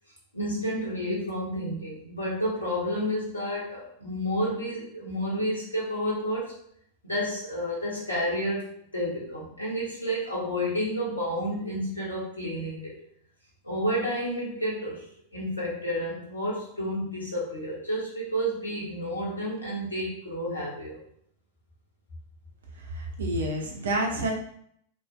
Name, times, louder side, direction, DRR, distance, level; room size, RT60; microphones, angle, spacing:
voice 1, 0.3-6.5 7.0-12.9 13.6-15.0 15.3-21.0, equal, 80° left, -5 dB, 1.8 m, -30 dB
voice 2, 22.9-24.3, right 1 dB, 65° right, 0 dB, 1.2 m, -28 dB
5.3 x 4.2 x 2.3 m, 0.68 s
figure-of-eight pair, 90°, 0 cm